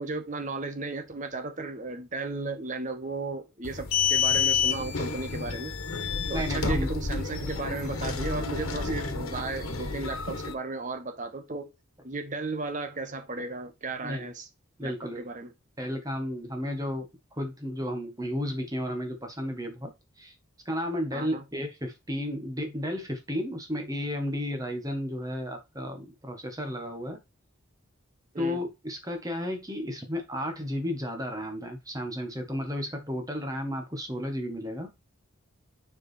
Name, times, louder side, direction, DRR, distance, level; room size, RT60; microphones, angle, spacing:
voice 1, 0.0-5.8 6.3-11.7 12.0-14.5 14.8-15.5 21.1-21.4 28.3-28.6, right 3 dB, 35° right, 1.2 m, -35 dB
sound 1, 3.6-10.5, left 5 dB, 85° left, 1.4 m, -29 dB
voice 2, 6.3-6.9 14.0-14.3 14.8-15.3 15.8-17.1 17.3-19.9 20.2-20.3 20.6-27.2 28.4-34.9, equal, 15° right, 1.6 m, -33 dB
5.9 x 4.9 x 4.5 m
head